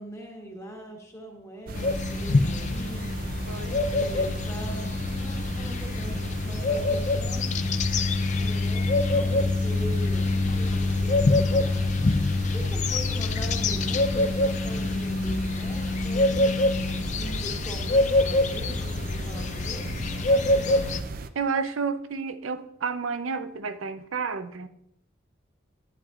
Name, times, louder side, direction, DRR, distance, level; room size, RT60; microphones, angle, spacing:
voice 1, 0.0-3.1 3.6-7.5 8.3-11.8 12.5-16.7 17.1-20.9, equal, 15° left, 0 dB, 1.2 m, -41 dB
sound 1, 1.7-21.3, right 3 dB, 45° right, 0.4 m, -37 dB
sound 2, 1.8-21.0, left 2 dB, 35° left, 0.4 m, -25 dB
voice 2, 3.5-4.1 12.6-12.7 21.3-24.7, right 5 dB, 90° right, 10 dB, 0.6 m, -31 dB
11.0 x 9.4 x 2.4 m, 0.76 s
head